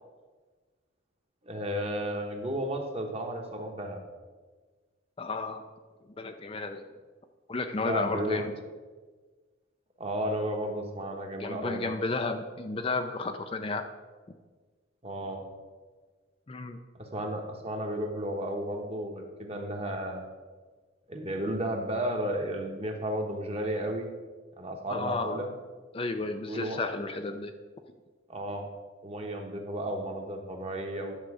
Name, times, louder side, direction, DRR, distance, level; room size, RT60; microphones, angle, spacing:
voice 1, 1.4-4.0 7.8-8.4 10.0-11.9 15.0-15.4 17.0-20.3 21.1-24.1 24.6-25.5 26.5-26.8 28.3-28.7 29.0-31.2, right 1 dB, 30° right, 3 dB, 1.1 m, -33 dB
voice 2, 5.2-5.6 6.2-6.8 7.5-8.5 11.4-13.8 16.5-16.8 24.9-25.4 25.9-27.5, left 3 dB, 30° left, 6 dB, 0.4 m, -32 dB
10.0 x 6.5 x 4.9 m, 1.4 s
head